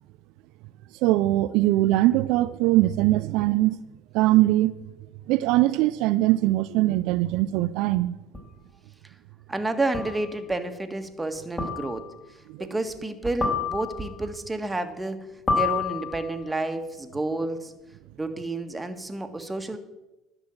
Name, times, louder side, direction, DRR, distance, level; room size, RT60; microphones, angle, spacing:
voice 1, 1.0-3.8 4.1-4.7 5.3-8.2, right 16 dB, 70° right, 0.4 m, -21 dB
sound 1, 8.3-8.4 9.9-10.3 11.6-12.1 13.4-14.2 15.5-16.4, left 5 dB, 30° left, 4.0 m, -28 dB
voice 2, 9.5-12.0 12.6-15.3 15.5-17.7 18.2-19.8, right 2 dB, 15° right, 1.6 m, -30 dB
11.5 x 6.3 x 8.8 m
hypercardioid pair, 65°, 0 cm